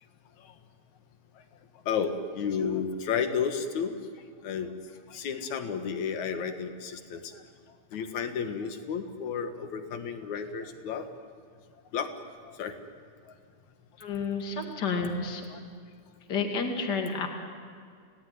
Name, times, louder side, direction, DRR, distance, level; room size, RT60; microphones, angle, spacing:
voice 1, 1.9-3.9 4.4-4.7 5.1-7.2 7.9-11.1 11.9-12.1 12.5-12.7 15.5-15.6, left 6 dB, 65° left, 8 dB, 2.9 m, -32 dB
voice 2, 14.0-15.4 16.3-17.3, left 4 dB, 35° left, 4 dB, 2.7 m, -30 dB
29.5 x 18.0 x 9.5 m, 2.2 s
omnidirectional pair, 3.7 m